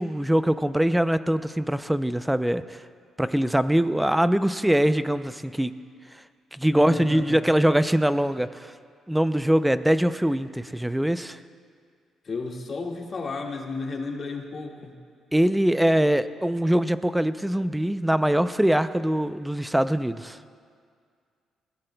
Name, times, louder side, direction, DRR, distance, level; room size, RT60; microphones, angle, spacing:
voice 1, 0.0-2.8 3.2-5.7 6.5-8.7 9.1-11.4 15.3-20.4, right 1 dB, 5° right, 12 dB, 0.5 m, -23 dB
voice 2, 6.7-7.4 12.2-15.0, left 3 dB, 45° left, 0 dB, 1.9 m, -33 dB
21.0 x 17.0 x 2.3 m, 2.1 s
cardioid pair, 90°, 0 cm